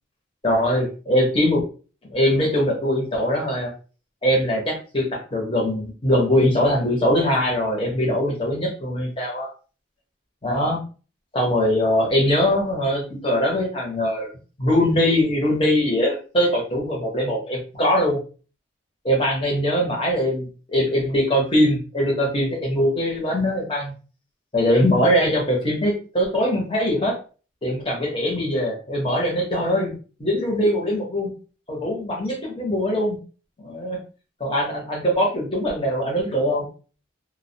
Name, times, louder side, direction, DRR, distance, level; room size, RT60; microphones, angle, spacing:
voice 1, 0.4-1.6 2.1-3.7 4.2-9.5 10.4-10.8 11.3-14.3 14.6-18.2 19.0-23.9 24.5-27.1 27.6-31.3 31.7-33.2 33.6-34.0 34.4-36.7, equal, 25° left, -2 dB, 0.8 m, -22 dB
2.2 x 2.1 x 2.7 m, 0.36 s
head